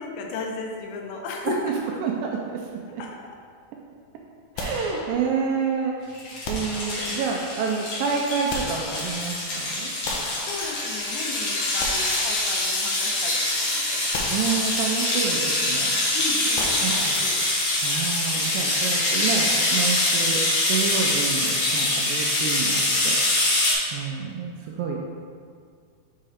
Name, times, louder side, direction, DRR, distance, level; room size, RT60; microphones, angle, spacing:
voice 1, 0.0-1.8 3.0-3.2 10.5-14.1 16.1-17.5, left 3 dB, 90° left, 1 dB, 2.7 m, -35 dB
voice 2, 2.0-2.6 2.9-3.0 4.6-6.0 6.5-9.9 14.3-16.0 16.8-17.2 17.8-20.4 20.7-23.2 23.9-25.0, right 6 dB, 80° right, 0 dB, 2.0 m, -28 dB
sound 1, 4.6-5.6 6.4-7.5 8.2-9.5 10.0-11.2 11.6-13.1 13.4-13.6 14.1-15.2 16.6-17.7, left 2 dB, 75° left, 2.2 m, -36 dB
sound 2, 6.1-23.7, left 2 dB, 55° left, 2.2 m, -24 dB
6.4 x 5.0 x 4.2 m, 2.1 s
omnidirectional pair, 4.4 m